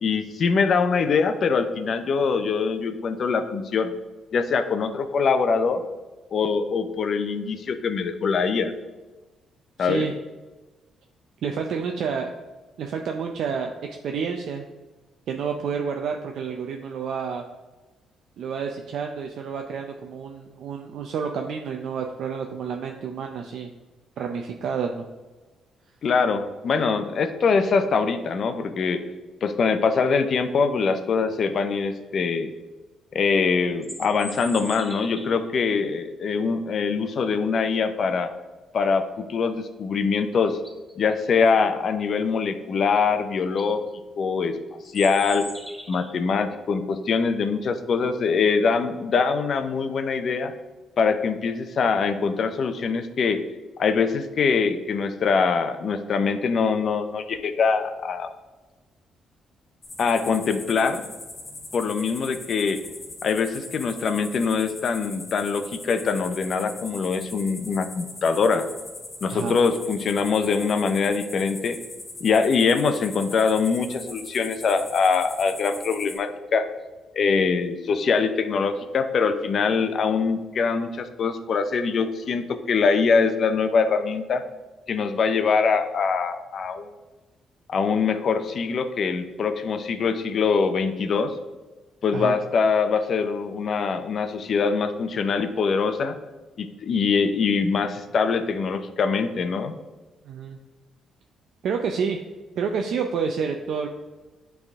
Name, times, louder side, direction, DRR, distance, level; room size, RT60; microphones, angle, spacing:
voice 1, 0.0-3.9 4.3-5.8 6.3-8.7 9.8-10.1 26.0-29.0 29.4-32.5 33.1-38.3 38.7-40.6 41.0-43.8 44.2-44.5 44.9-45.5 45.9-50.5 51.0-53.4 53.8-58.3 60.0-61.1 61.7-62.8 63.2-68.7 69.2-71.8 72.2-76.6 77.1-84.4 84.9-86.9 87.7-91.3 92.0-96.2 96.6-99.8, left 5 dB, 55° left, 9 dB, 0.6 m, -23 dB
voice 2, 9.8-10.1 11.4-12.3 12.8-13.7 14.0-14.7 15.3-17.4 18.4-23.7 24.2-25.1 69.3-69.6 92.1-92.3 100.2-100.6 101.6-102.2 102.6-103.9, right 6 dB, 70° right, 3 dB, 0.5 m, -29 dB
sound 1, 33.6-35.5 40.0-40.1 40.5-40.9 43.0-43.1 43.4-43.7 44.8-46.2, equal, ahead, 0.9 m, -40 dB
sound 2, 59.8-76.2, left 2 dB, 30° left, 2.1 m, -40 dB
8.8 x 3.5 x 3.6 m, 1.2 s
cardioid pair, 90°, 0 cm